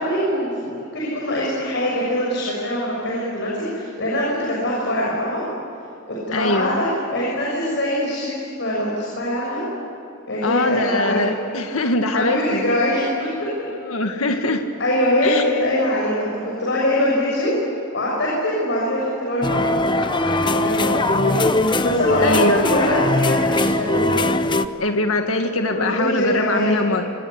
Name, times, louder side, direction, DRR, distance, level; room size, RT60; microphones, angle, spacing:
voice 1, 0.0-5.4 6.1-9.6 10.3-11.2 12.1-13.5 14.8-17.5 17.9-24.2 25.7-26.8, left 1 dB, 60° left, -4 dB, 6.7 m, -23 dB
voice 2, 6.3-6.8 10.4-12.7 13.8-14.6 15.2-15.4 22.2-22.6 24.8-27.1, left 2 dB, 80° left, 5 dB, 1.8 m, -22 dB
sound 1, 19.4-24.7, left 2 dB, 25° left, 0.9 m, -20 dB
27.5 x 26.0 x 8.4 m, 2.9 s
head